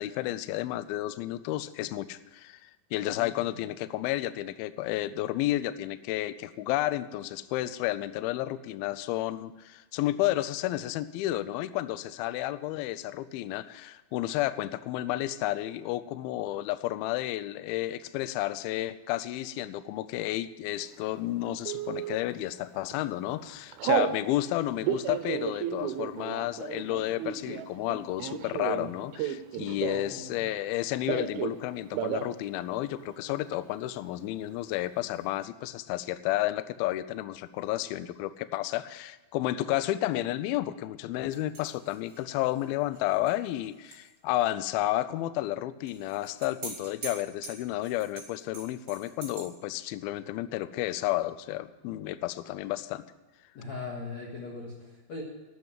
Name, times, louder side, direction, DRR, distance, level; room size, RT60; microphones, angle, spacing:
voice 1, 0.0-53.0, left 15 dB, 85° left, 14 dB, 2.2 m, -31 dB
voice 2, 3.1-3.5 29.6-30.4 53.5-55.2, left 3 dB, 55° left, -2 dB, 2.4 m, -40 dB
Telephone, 21.7-22.2 22.7-23.0 23.3-24.2 24.7-30.2 30.5-31.6 31.9-32.3 32.6-32.7 33.0-33.6, right 10 dB, 75° right, 2.5 m, -32 dB
sound 1, 41.3-44.1 44.4-44.5 45.8-49.4, right 3 dB, 30° right, 3.3 m, -45 dB
12.5 x 7.9 x 9.0 m, 1.1 s
omnidirectional pair, 4.8 m